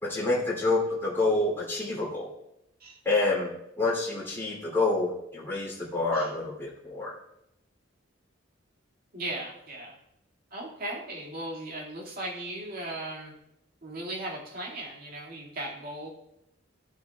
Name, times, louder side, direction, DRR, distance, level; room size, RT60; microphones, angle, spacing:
voice 1, 0.0-2.3 3.0-3.5 3.8-7.1, left 2 dB, 10° left, -6 dB, 2.9 m, -27 dB
voice 2, 9.1-9.9 10.5-13.3 13.8-16.1, right 1 dB, 50° right, -2 dB, 2.2 m, -37 dB
15.0 x 7.1 x 2.3 m, 0.80 s
head